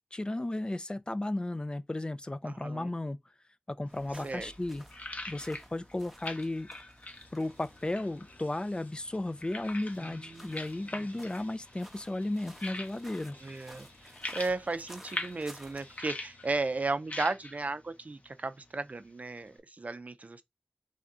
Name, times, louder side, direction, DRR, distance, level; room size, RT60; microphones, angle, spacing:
voice 1, 0.1-3.2 3.7-4.8 5.3-6.7 7.3-13.4, left 1 dB, 30° left, 0.5 m, -34 dB
voice 2, 2.5-2.9 4.2-4.5 10.2-10.6 13.4-13.9 14.3-20.4, right 3 dB, 55° right, 0.4 m, -35 dB
sound 1, 3.9-19.6, left 2 dB, 55° left, 0.9 m, -45 dB
sound 2, 3.9-16.0, equal, 5° right, 0.8 m, -55 dB
sound 3, 7.1-16.9, left 2 dB, 80° left, 1.3 m, -58 dB
3.4 x 2.6 x 3.6 m
wide cardioid pair, 60°, 3 cm